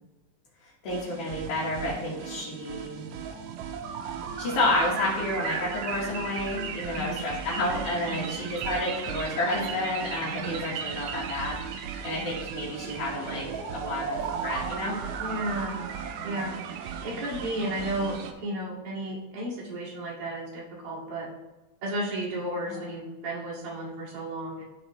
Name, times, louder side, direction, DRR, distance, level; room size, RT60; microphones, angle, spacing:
voice 1, 0.8-3.1 4.4-13.5 13.7-15.0 16.2-16.6 22.7-22.8, left 1 dB, 75° left, -8 dB, 3.0 m, -30 dB
sound 1, 0.9-18.3, right 7 dB, 75° right, 1.8 m, -36 dB
voice 2, 15.2-15.8 16.2-16.5 17.0-21.3 21.8-24.6, right 1 dB, 50° right, -6 dB, 2.8 m, -33 dB
13.0 x 4.4 x 3.1 m, 1.1 s
omnidirectional pair, 3.5 m